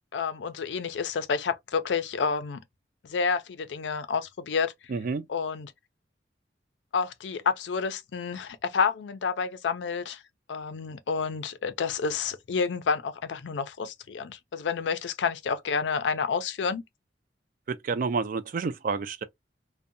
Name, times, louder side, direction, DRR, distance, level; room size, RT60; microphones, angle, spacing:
voice 1, 0.1-2.6 3.0-4.7 5.3-5.7 6.9-10.2 10.5-16.8, left 5 dB, 90° left, 0.4 m, -29 dB
voice 2, 4.9-5.2 17.7-19.2, right 4 dB, 50° right, 0.3 m, -29 dB
2.6 x 2.1 x 2.5 m
head